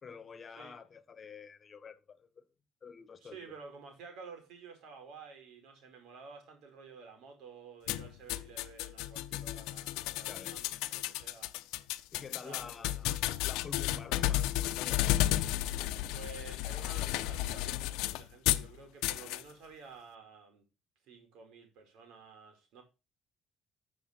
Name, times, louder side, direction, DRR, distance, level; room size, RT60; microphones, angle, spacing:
voice 1, 0.0-2.4 2.8-3.5 10.3-10.6 12.1-15.1, left 5 dB, 40° left, 1.5 m, -48 dB
voice 2, 3.2-11.5 12.4-13.1 16.1-20.6 21.1-22.8, right 5 dB, 80° right, 5.1 m, -52 dB
sound 1, 7.9-18.7 19.0-19.4, left 15 dB, 90° left, 0.7 m, -33 dB
13.5 x 7.0 x 4.5 m
cardioid pair, 85°, 0 cm